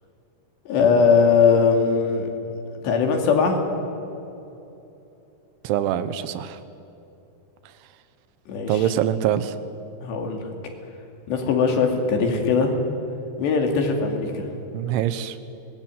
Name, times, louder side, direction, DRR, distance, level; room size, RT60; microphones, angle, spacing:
voice 1, 0.7-2.3 2.8-3.6 8.5-8.9 10.0-10.4 11.3-12.7 13.4-14.5, left 5 dB, 70° left, 3 dB, 4.6 m, -20 dB
voice 2, 5.7-6.6 8.7-9.6 14.7-15.4, right 11 dB, 90° right, 13 dB, 3.4 m, -24 dB
24.5 x 20.0 x 9.3 m, 2.9 s
omnidirectional pair, 5.3 m